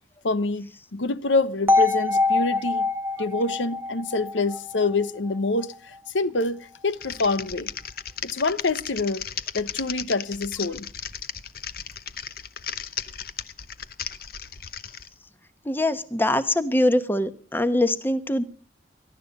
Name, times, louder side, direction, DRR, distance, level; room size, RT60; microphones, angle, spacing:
voice 1, 0.2-2.9 3.2-5.7 6.1-7.7 8.2-9.2 9.5-10.9, left 3 dB, 90° left, 0.9 m, -26 dB
sound 1, 1.7-5.7, left 3 dB, 15° right, 0.7 m, -24 dB
Typing, 6.9-15.1, left 8 dB, 50° left, 0.9 m, -35 dB
voice 2, 15.6-18.4, left 1 dB, 10° left, 1.0 m, -23 dB
22.0 x 12.0 x 5.3 m
head